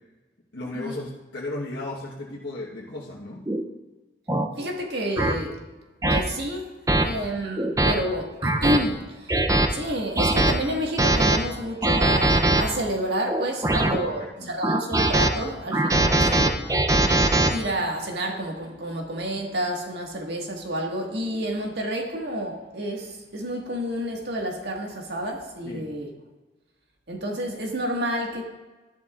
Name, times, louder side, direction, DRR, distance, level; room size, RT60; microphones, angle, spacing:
voice 1, 0.5-3.5 13.6-13.7 14.0-14.5 25.6-25.9, left 2 dB, 85° left, -6 dB, 1.2 m, -35 dB
sound 1, 3.5-3.6 4.3-4.5 5.2-5.3 6.0-6.2 6.9-7.0 7.6-7.9 8.4-8.8 9.3-9.7 10.2-10.5 11.0-11.4 11.8-12.6 13.3-14.0 14.6-15.3 15.7-17.5, right 2 dB, 20° right, 0.5 m, -20 dB
voice 2, 4.6-5.6 6.1-6.7 7.0-16.7 17.5-26.1 27.1-28.4, equal, 70° right, 1 dB, 1.7 m, -29 dB
12.5 x 11.5 x 2.4 m, 1.2 s
head